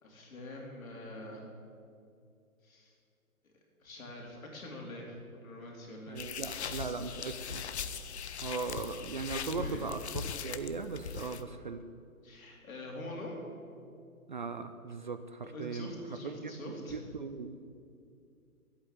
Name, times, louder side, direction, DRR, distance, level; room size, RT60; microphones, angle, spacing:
voice 1, 0.0-1.5 2.6-2.9 3.8-6.3 9.5-9.8 12.2-13.4 15.4-17.0, left 1 dB, 65° left, -1 dB, 4.0 m, -44 dB
voice 2, 6.1-7.6 8.4-11.8 14.3-16.0 16.2-17.6, right 4 dB, 35° right, 9 dB, 0.5 m, -39 dB
sound 1, 6.2-11.4, left 7 dB, 50° left, 0.8 m, -40 dB
11.0 x 8.5 x 9.5 m, 2.4 s
hypercardioid pair, 140°, 44 cm